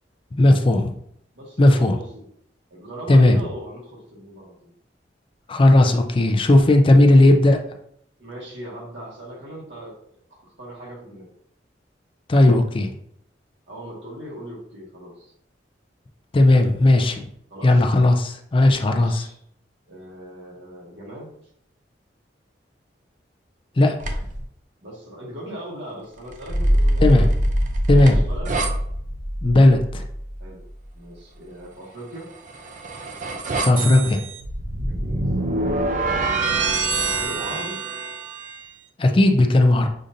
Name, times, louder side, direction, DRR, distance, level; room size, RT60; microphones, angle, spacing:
voice 1, 0.4-0.9 1.6-2.0 3.1-3.4 5.5-7.6 12.3-12.9 16.3-17.2 17.6-19.2 23.8-23.9 27.0-27.3 27.9-28.2 29.4-30.0 33.5-34.2 39.0-39.9, left 1 dB, 30° left, 4 dB, 0.4 m, -16 dB
voice 2, 1.3-2.3 2.7-4.7 8.2-10.0 10.3-11.3 13.7-15.3 17.5-17.9 18.8-19.4 19.9-21.3 24.8-27.3 28.0-28.6 30.4-30.6 30.9-32.3 34.8-35.3 36.1-37.8, right 1 dB, 80° right, -3 dB, 1.5 m, -39 dB
sound 1, 24.0-24.4 26.3-28.7 32.2-38.6, right 3 dB, 45° right, 0.5 m, -27 dB
sound 2, 26.5-30.7, equal, 85° left, 0.8 m, -22 dB
6.3 x 2.6 x 2.6 m, 0.68 s
head